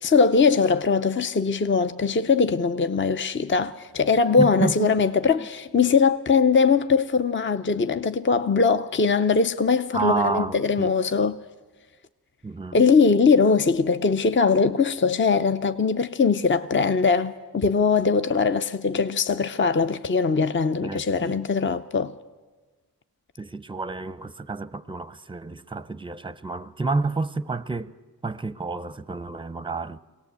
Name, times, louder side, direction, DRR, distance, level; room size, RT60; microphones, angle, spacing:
voice 1, 0.0-11.4 12.7-22.1, left 5 dB, 30° left, 0.6 m, -21 dB
voice 2, 4.4-4.9 5.2-5.5 9.9-10.9 12.4-12.8 20.8-21.3 23.4-27.9 28.2-30.0, right 3 dB, 15° right, 0.6 m, -29 dB
23.0 x 18.0 x 8.1 m
wide cardioid pair, 100°, 38 cm